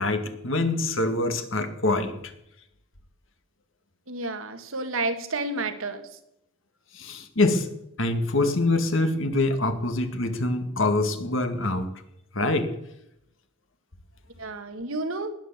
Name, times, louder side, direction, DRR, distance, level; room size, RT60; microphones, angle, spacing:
voice 1, 0.0-2.3 6.9-7.7 8.0-11.9 12.3-12.7, left 2 dB, 65° left, 8 dB, 2.0 m, -25 dB
voice 2, 4.1-6.1 14.4-15.3, right 2 dB, 75° right, 8 dB, 1.7 m, -30 dB
20.0 x 9.3 x 7.4 m, 0.83 s
head